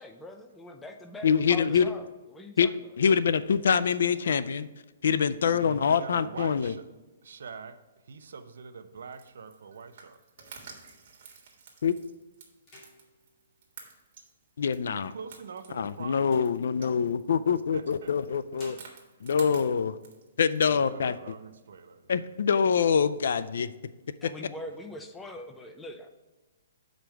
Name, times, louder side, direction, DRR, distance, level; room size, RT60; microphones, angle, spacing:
voice 1, 0.0-2.9 24.2-26.1, left 1 dB, 5° left, 0.5 m, -43 dB
voice 2, 1.2-1.9 2.6-2.7 3.0-4.7 5.0-6.7 11.8-12.0 14.6-15.1 15.7-18.8 19.2-20.0 20.4-21.3 22.1-23.7 24.2-24.3, left 6 dB, 70° left, 0.4 m, -25 dB
voice 3, 5.4-6.9 7.2-10.2 14.8-16.2 17.7-18.1 18.5-18.6 20.6-22.1, right 5 dB, 75° right, 0.6 m, -44 dB
sound 1, 8.9-20.6, right 5 dB, 50° right, 1.5 m, -51 dB
sound 2, 9.8-11.5 12.0-12.2 12.5-14.5 15.1-17.3 18.2-20.2 20.5-21.4 21.8-21.9 22.2-22.9 23.3-24.2, equal, 25° left, 2.4 m, -57 dB
7.3 x 5.1 x 4.6 m
hypercardioid pair, 170°, 0 cm